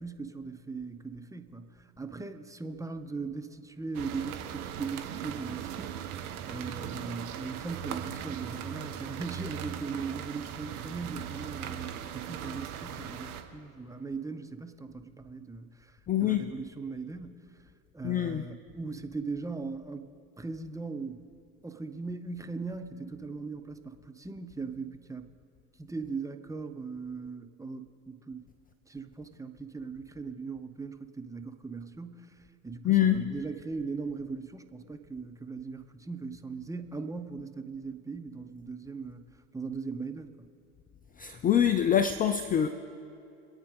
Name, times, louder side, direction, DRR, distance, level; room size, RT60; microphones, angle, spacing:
voice 1, 0.0-6.1 6.5-17.4 17.9-20.1 20.4-21.3 21.6-25.3 25.8-28.4 28.9-40.5, right 4 dB, 5° right, 7 dB, 0.8 m, -39 dB
sound 1, 3.9-13.4, right 9 dB, 70° right, 1.4 m, -39 dB
voice 2, 16.1-16.5 18.0-18.4 32.8-33.3 41.2-42.7, left 10 dB, 20° left, 11 dB, 0.5 m, -25 dB
26.0 x 8.8 x 3.7 m, 2.6 s
hypercardioid pair, 80°, 46 cm